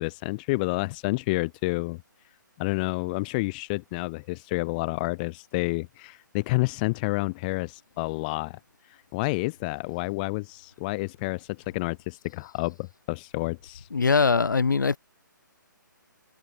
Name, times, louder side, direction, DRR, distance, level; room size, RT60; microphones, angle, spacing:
voice 1, 0.0-2.0 2.6-8.6 8.9-13.9, left 25 dB, 25° left, 1.3 m, -29 dB
voice 2, 13.9-15.0, left 5 dB, 70° left, 0.9 m, -21 dB
figure-of-eight pair, 135°, 11 cm